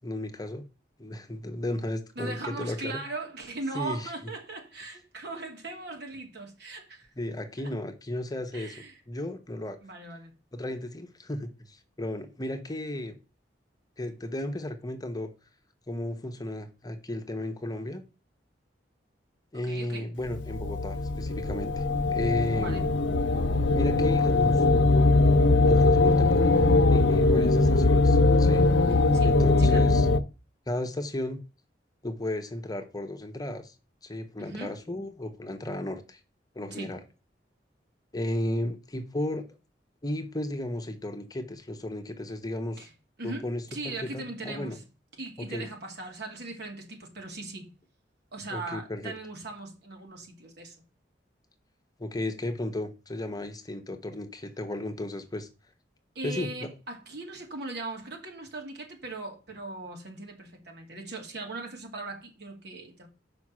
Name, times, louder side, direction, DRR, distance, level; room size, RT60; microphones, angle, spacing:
voice 1, 0.0-0.6 1.0-3.0 3.7-4.1 7.2-8.7 9.1-9.8 10.5-13.1 14.0-15.3 15.9-18.0 19.5-22.9 23.7-24.6 25.6-28.7 29.2-30.1 30.7-31.4 32.0-33.7 34.0-36.2 36.5-37.0 38.1-39.4 40.0-42.9 43.2-44.8 45.4-45.7 48.5-49.1 52.0-55.5 56.2-56.7, left 1 dB, 20° left, 1.0 m, -34 dB
voice 2, 2.2-7.1 7.6-7.7 8.5-9.0 9.8-10.3 19.5-20.1 22.5-22.9 29.1-29.9 34.4-34.8 36.7-36.9 42.8-42.9 43.2-44.8 45.2-47.7 48.3-50.8 56.1-63.1, right 2 dB, 65° right, 2.5 m, -39 dB
sound 1, 20.3-30.2, left 2 dB, 85° left, 0.7 m, -21 dB
6.1 x 5.2 x 6.1 m
head